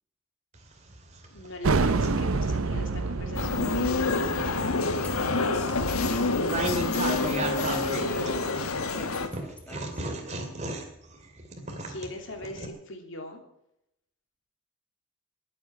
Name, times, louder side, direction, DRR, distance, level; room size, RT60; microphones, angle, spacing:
sound 1, 0.5-2.7 3.3-8.9 9.3-12.7, right 2 dB, 30° right, 2.5 m, -35 dB
voice 1, 1.3-4.6 11.9-13.4, left 2 dB, 60° left, 4 dB, 3.1 m, -41 dB
sound 2, 1.6-7.0, right 3 dB, 80° right, 0.7 m, -29 dB
sound 3, 3.4-9.3, left 3 dB, 85° left, 1.6 m, -27 dB
voice 2, 7.0-8.5 8.9-10.3, left 1 dB, 5° left, 2 dB, 1.6 m, -42 dB
21.0 x 8.7 x 5.9 m, 0.80 s
head